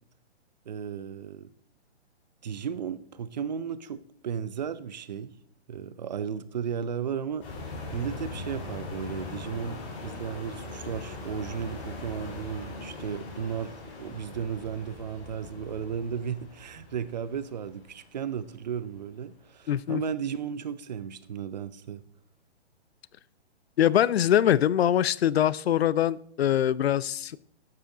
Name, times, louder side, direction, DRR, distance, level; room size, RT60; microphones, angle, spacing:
voice 1, 0.7-1.5 2.4-5.4 5.7-22.0, right 7 dB, 40° right, 0.6 m, -35 dB
sound 1, 7.4-18.8 19.2-19.4, left 3 dB, 25° left, 5.0 m, -41 dB
voice 2, 19.7-20.0 23.8-27.4, left 11 dB, 65° left, 0.5 m, -23 dB
12.5 x 7.6 x 3.8 m
hypercardioid pair, 160°, 33 cm